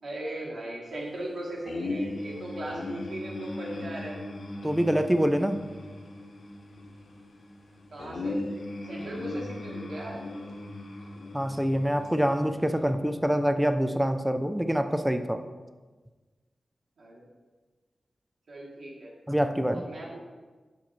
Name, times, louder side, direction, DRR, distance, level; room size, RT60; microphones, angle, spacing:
voice 1, 0.0-4.2 7.9-8.4 8.8-10.2 17.0-17.2 18.5-19.1 19.7-20.2, right 1 dB, 65° right, -4 dB, 1.7 m, -38 dB
sound 1, 1.7-12.9, left 2 dB, 85° left, 0.9 m, -38 dB
voice 2, 4.6-5.6 11.3-15.4 19.3-19.9, equal, 5° right, 8 dB, 0.3 m, -25 dB
7.3 x 3.0 x 5.3 m, 1.3 s
wide cardioid pair, 130°, 0 cm